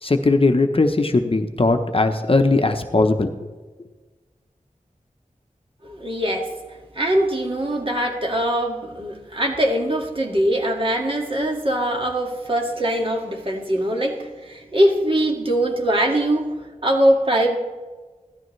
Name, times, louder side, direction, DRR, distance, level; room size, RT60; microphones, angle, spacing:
voice 1, 0.0-3.3, left 2 dB, 40° left, 6 dB, 0.9 m, -19 dB
voice 2, 5.8-17.6, right 1 dB, 40° right, 1 dB, 2.0 m, -22 dB
16.5 x 13.0 x 3.2 m, 1.3 s
wide cardioid pair, 75°, 14 cm